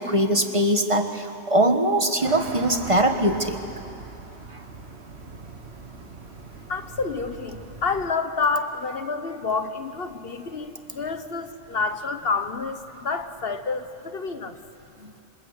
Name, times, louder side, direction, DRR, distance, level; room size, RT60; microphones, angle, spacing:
voice 1, 0.0-3.6, right 1 dB, 30° right, 6 dB, 1.4 m, -21 dB
sound 1, 2.2-8.1, right 3 dB, 70° right, 1.9 m, -40 dB
voice 2, 6.7-14.5 15.0-15.1, left 4 dB, 60° left, 9 dB, 1.3 m, -28 dB
27.5 x 26.0 x 8.3 m, 2.7 s
omnidirectional pair, 1.1 m